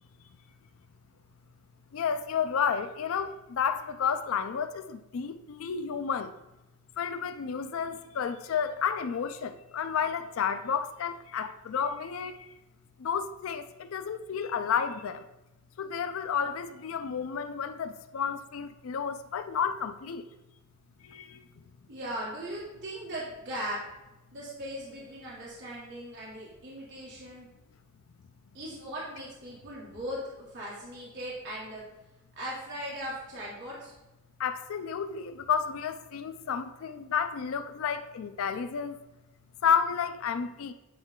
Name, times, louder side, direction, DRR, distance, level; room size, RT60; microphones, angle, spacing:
voice 1, 1.9-6.3 7.0-12.3 13.0-15.2 15.8-20.2 21.1-21.4 34.4-39.0 39.6-40.7, left 7 dB, 65° left, 0.4 m, -31 dB
voice 2, 21.9-23.8 24.3-27.5 28.5-31.8 32.4-33.9, equal, 55° right, 1.7 m, -38 dB
9.4 x 3.2 x 3.7 m
head